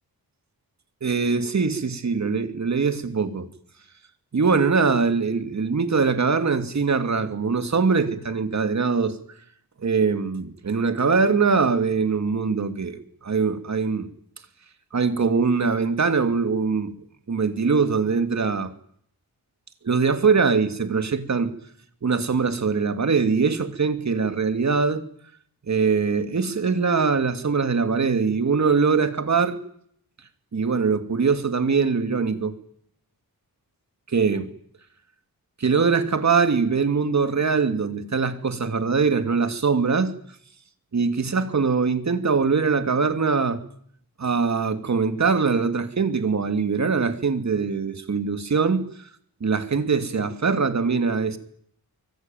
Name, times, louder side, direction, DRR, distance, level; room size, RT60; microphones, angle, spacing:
voice 1, 1.0-3.5 4.3-9.1 9.8-14.1 14.9-16.9 17.3-18.7 19.8-21.5 22.0-25.0 25.7-29.6 30.5-32.5 34.1-34.5 35.6-40.1 40.9-43.6 44.2-49.1 49.4-51.4, right 5 dB, 50° right, 2.7 m, -22 dB
25.0 x 24.5 x 9.3 m
wide cardioid pair, 145°, 37 cm